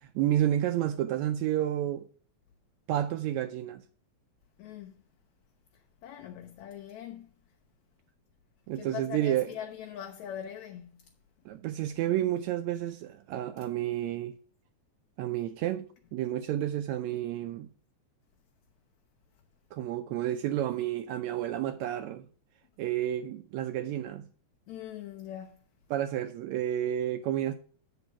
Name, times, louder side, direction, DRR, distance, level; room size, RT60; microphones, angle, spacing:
voice 1, 0.0-2.1 2.9-3.8 8.7-9.5 11.5-14.3 15.2-17.7 19.7-22.3 22.8-24.3 25.9-27.5, right 12 dB, 80° right, 1.8 m, -30 dB
voice 2, 4.6-5.0 6.0-7.3 8.8-11.1 24.7-25.6, left 10 dB, 75° left, 2.1 m, -42 dB
8.1 x 6.9 x 4.6 m
omnidirectional pair, 3.4 m